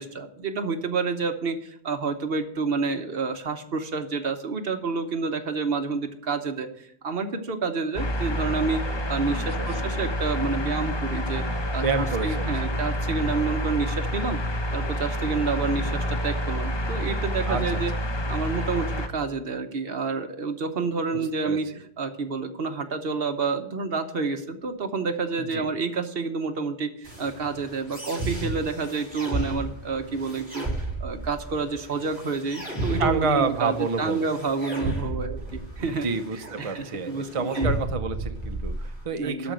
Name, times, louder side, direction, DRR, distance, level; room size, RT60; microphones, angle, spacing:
voice 1, 0.0-6.7 7.0-8.8 9.1-11.4 11.7-14.4 14.7-17.9 18.3-30.7 31.0-36.1 36.6-37.7 39.1-39.5, right 4 dB, 60° right, 7 dB, 1.2 m, -29 dB
sound 1, 8.0-19.1, equal, 25° left, 0.8 m, -28 dB
voice 2, 11.8-12.7 17.5-17.8 21.4-21.6 25.4-25.7 33.0-34.2 35.8-39.5, right 4 dB, 35° right, 8 dB, 0.6 m, -28 dB
sound 2, 27.0-39.0, right 1 dB, 5° right, 4.7 m, -33 dB
12.5 x 5.1 x 7.5 m, 0.71 s
omnidirectional pair, 1.2 m